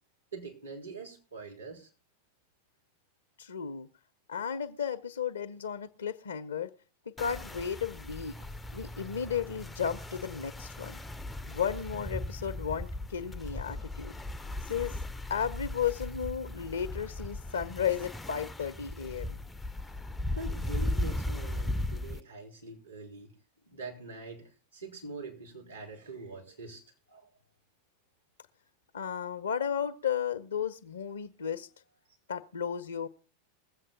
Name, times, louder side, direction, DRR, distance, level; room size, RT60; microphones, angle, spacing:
voice 1, 0.3-1.9 20.3-23.3 23.7-26.8 27.1-27.3, right 3 dB, 80° right, 3.9 m, -44 dB
voice 2, 3.4-3.9 4.3-6.7 7.1-8.4 8.7-11.0 11.5-14.2 14.6-15.0 15.3-19.4 28.9-31.7 32.3-33.1, left 8 dB, 70° left, 0.6 m, -34 dB
sound 1, 7.2-22.2, left 1 dB, 10° left, 0.5 m, -37 dB
21.0 x 7.8 x 3.9 m
figure-of-eight pair, 90°, 0 cm